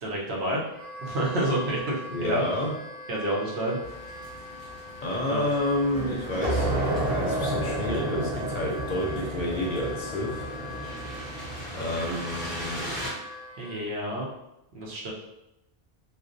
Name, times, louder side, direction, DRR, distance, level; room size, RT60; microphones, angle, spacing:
voice 1, 0.0-0.6 1.0-2.4 3.1-3.8 5.3-5.4 13.6-14.3 14.7-15.1, right 1 dB, 85° right, -3 dB, 1.0 m, -29 dB
Wind instrument woodwind instrument, 0.7-13.9, left 1 dB, 15° left, 0.4 m, -42 dB
voice 2, 2.1-2.7 5.0-6.7 7.1-10.4 11.7-12.9, left 1 dB, 60° left, -2 dB, 0.6 m, -29 dB
sound 1, 3.8-13.1, equal, 60° right, 1.2 m, -41 dB
sound 2, 5.9-12.3, right 1 dB, 40° right, 0.7 m, -31 dB
2.5 x 2.0 x 2.5 m, 0.88 s
omnidirectional pair, 1.1 m